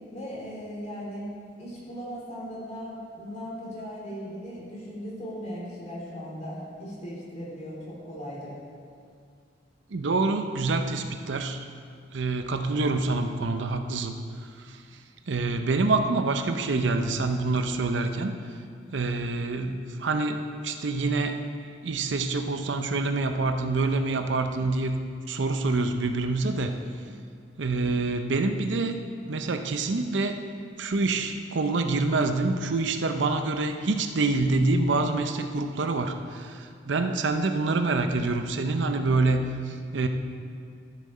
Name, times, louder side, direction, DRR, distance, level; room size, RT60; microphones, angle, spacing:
voice 1, 0.1-1.3 1.6-8.6 37.3-37.8, equal, 40° left, -5 dB, 3.1 m, -38 dB
voice 2, 9.9-11.6 12.1-14.1 15.3-18.4 18.9-21.4 21.8-25.0 25.3-26.7 27.6-29.0 29.3-30.4 30.8-40.1, right 3 dB, 75° right, 7 dB, 0.6 m, -26 dB
13.5 x 7.4 x 4.2 m, 2.2 s
head